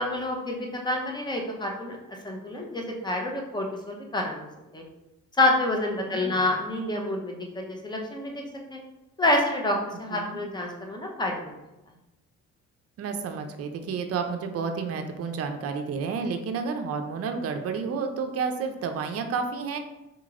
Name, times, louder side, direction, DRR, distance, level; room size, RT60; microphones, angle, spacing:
voice 1, 0.0-2.0 2.2-4.5 4.7-4.8 5.4-8.4 8.7-8.8 9.2-11.5, left 1 dB, 15° left, 0 dB, 0.8 m, -28 dB
voice 2, 6.0-6.5 10.1-10.4 13.0-19.8, right 5 dB, 55° right, 6 dB, 0.5 m, -31 dB
4.1 x 2.9 x 2.5 m, 0.96 s
cardioid pair, 90°, 30 cm